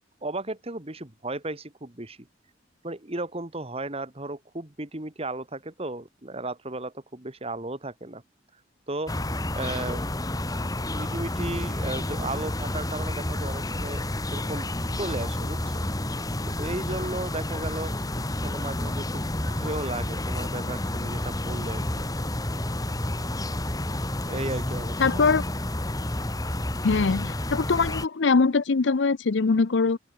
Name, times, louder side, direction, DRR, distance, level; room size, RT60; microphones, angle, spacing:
voice 1, 0.2-2.2 2.8-8.2 8.9-9.2 9.6-10.1 10.9-14.0 14.3-15.8 16.5-18.0 18.4-22.0 24.3-25.2, right 2 dB, 30° right, 2.2 m, -35 dB
sound 1, 9.1-28.1, left 1 dB, 20° left, 1.7 m, -30 dB
voice 2, 25.0-25.4 26.8-30.0, left 4 dB, 75° left, 0.6 m, -22 dB
open air
head